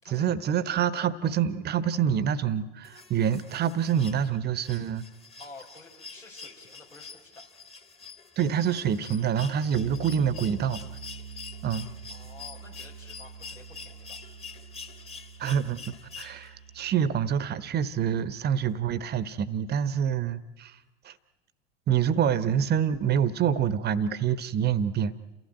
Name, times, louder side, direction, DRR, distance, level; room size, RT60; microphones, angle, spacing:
voice 1, 0.1-5.0 8.4-10.8 11.6-11.9 15.4-20.8 21.0-21.1 21.9-25.1, right 8 dB, 25° right, 16 dB, 1.1 m, -26 dB
sound 1, 2.8-16.8 18.2-18.3, left 5 dB, 15° left, 1.5 m, -46 dB
voice 2, 5.4-7.4 12.1-14.2, left 3 dB, 90° left, -1 dB, 4.7 m, -50 dB
Bass guitar, 9.7-19.4, right 7 dB, 60° right, 1.0 m, -45 dB
29.0 x 15.5 x 9.0 m, 1.0 s
figure-of-eight pair, 85°, 37 cm